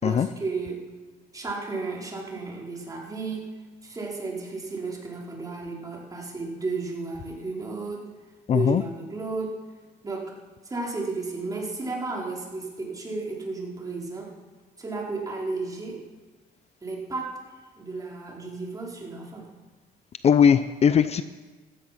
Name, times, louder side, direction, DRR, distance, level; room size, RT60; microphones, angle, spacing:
voice 1, 0.0-0.9 1.3-3.5 3.8-8.1 8.5-9.5 10.0-10.3 10.6-14.3 14.8-16.0 16.8-19.5, right 3 dB, 20° right, -2 dB, 4.4 m, -33 dB
voice 2, 8.5-8.8 20.2-21.2, left 7 dB, 40° left, 13 dB, 0.6 m, -19 dB
16.0 x 13.5 x 5.9 m, 1.3 s
cardioid pair, 110°, 17 cm